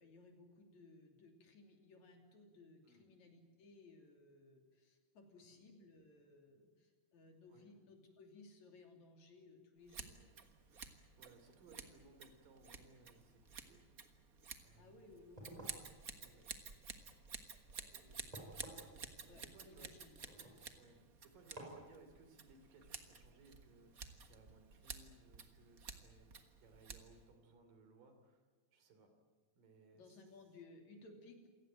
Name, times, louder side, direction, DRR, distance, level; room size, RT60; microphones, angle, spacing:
voice 1, 0.0-10.4 14.8-16.8 17.7-18.0 19.3-20.2 20.5-20.8 29.9-31.5, left 3 dB, 60° left, 4 dB, 4.2 m, -61 dB
Scissors, 9.9-27.3, right 5 dB, 45° right, 1.2 m, -53 dB
voice 2, 11.2-13.9 14.6-15.1 16.2-16.4 17.5-18.2 19.2-20.1 20.8-28.4 28.7-29.1 29.6-30.2, right 3 dB, 80° right, 6 dB, 4.8 m, -64 dB
sound 1, 15.3-21.0 21.6-21.9, right 1 dB, 10° right, 5.1 m, -56 dB
27.5 x 17.0 x 9.1 m, 1.5 s
omnidirectional pair, 3.8 m